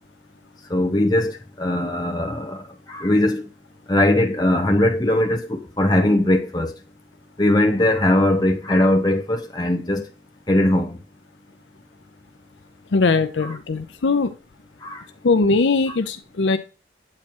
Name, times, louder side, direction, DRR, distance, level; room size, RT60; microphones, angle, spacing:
voice 1, 0.7-3.5 3.9-6.7 7.4-10.1 10.5-11.0 13.4-13.5 14.8-15.0, left 1 dB, 20° left, 0.8 m, -20 dB
voice 2, 12.9-14.3 15.2-16.6, left 3 dB, 80° left, 0.6 m, -20 dB
8.5 x 3.1 x 4.5 m
head